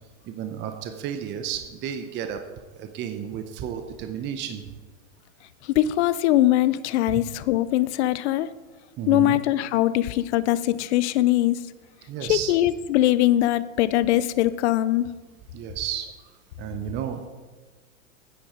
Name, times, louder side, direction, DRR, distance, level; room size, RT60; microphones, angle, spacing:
voice 1, 0.2-2.4 2.8-4.6 7.1-7.2 9.0-9.4 12.1-12.5 15.5-16.1 16.6-17.3, right 9 dB, 30° right, 7 dB, 0.8 m, -32 dB
voice 2, 5.6-8.5 9.1-11.6 12.2-15.1, left 14 dB, 55° left, 16 dB, 0.6 m, -22 dB
9.8 x 9.2 x 5.1 m, 1.3 s
hypercardioid pair, 125°, 40 cm